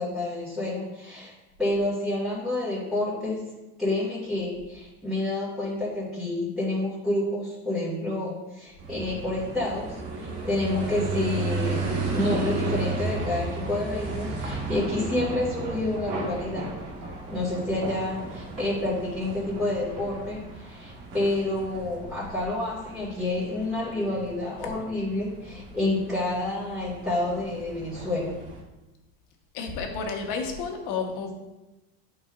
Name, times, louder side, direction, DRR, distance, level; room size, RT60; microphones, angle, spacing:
voice 1, 0.0-1.3 1.6-3.4 3.8-16.7 17.3-28.3, left 2 dB, ahead, -9 dB, 2.4 m, -29 dB
sound 1, 8.8-28.6, right 3 dB, 75° right, 1.7 m, -34 dB
voice 2, 29.5-31.3, left 5 dB, 70° left, 2 dB, 1.5 m, -31 dB
8.8 x 5.4 x 2.7 m, 1.0 s
supercardioid pair, 120°, 32 cm